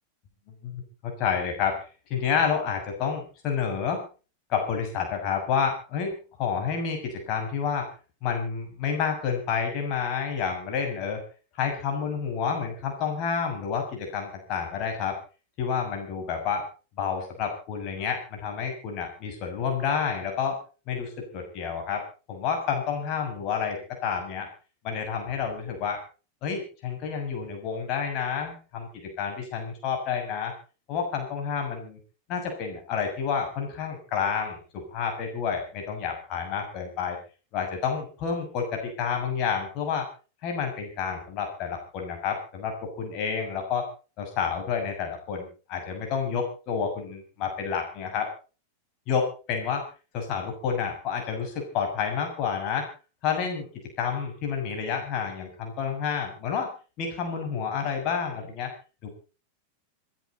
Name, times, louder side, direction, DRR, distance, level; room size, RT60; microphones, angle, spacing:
voice 1, 0.6-1.8 2.1-4.0 4.5-6.1 6.4-7.9 8.2-11.2 11.6-15.2 15.6-16.7 17.0-20.6 20.9-22.0 22.3-24.5 24.8-26.0 26.4-30.5 30.9-32.0 32.3-37.2 37.5-40.1 40.4-43.9 44.2-48.3 49.1-49.8 50.1-52.9 53.2-53.7 54.0-56.7 57.0-58.7 59.0-59.1, left 6 dB, 40° left, 3 dB, 6.7 m, -29 dB
27.0 x 10.5 x 4.1 m, 0.35 s
figure-of-eight pair, 90°, 0 cm